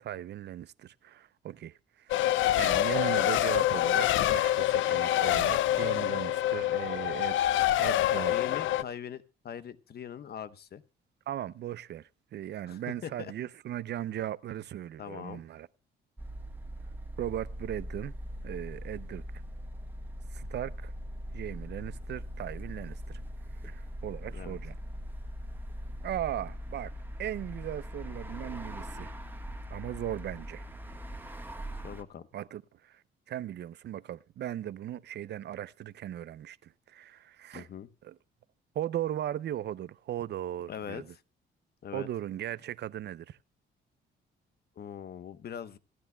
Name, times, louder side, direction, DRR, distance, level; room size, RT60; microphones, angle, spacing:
voice 1, 0.0-7.4 7.8-8.9 11.3-15.7 17.2-18.1 18.4-19.2 20.3-20.9 21.3-23.2 23.6-24.8 26.0-26.9 27.2-29.2 29.7-30.7 32.3-37.7 38.0-38.2 38.7-41.1 41.9-43.4, right 11 dB, 60° right, 0.5 m, -38 dB
Race car auto racing, 2.1-8.8, left 13 dB, 75° left, 0.5 m, -26 dB
voice 2, 8.3-10.8 12.7-13.3 15.0-15.4 24.3-24.6 31.8-32.3 37.5-37.9 40.7-41.0 41.8-42.1 44.8-45.8, left 8 dB, 55° left, 0.9 m, -41 dB
sound 1, 16.2-32.0, equal, 10° right, 1.3 m, -41 dB
27.0 x 9.7 x 2.2 m
cardioid pair, 90°, 20 cm